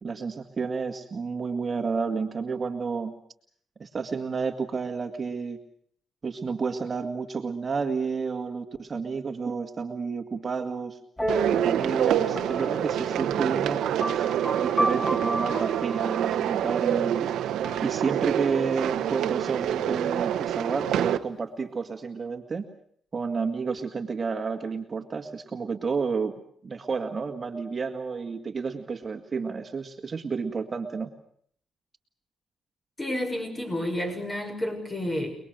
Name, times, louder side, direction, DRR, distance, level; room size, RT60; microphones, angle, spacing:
voice 1, 0.0-3.1 3.8-5.6 6.2-11.0 11.5-17.3 17.8-22.7 23.1-26.3 26.6-31.1, right 5 dB, 35° right, 4 dB, 2.1 m, -30 dB
sound 1, 11.2-18.7, right 1 dB, ahead, 1.8 m, -33 dB
sound 2, 11.3-21.2, right 11 dB, 90° right, 1.3 m, -27 dB
voice 2, 33.0-35.4, left 1 dB, 20° left, 5 dB, 7.0 m, -30 dB
30.0 x 20.5 x 6.6 m, 0.62 s
cardioid pair, 105°, 0 cm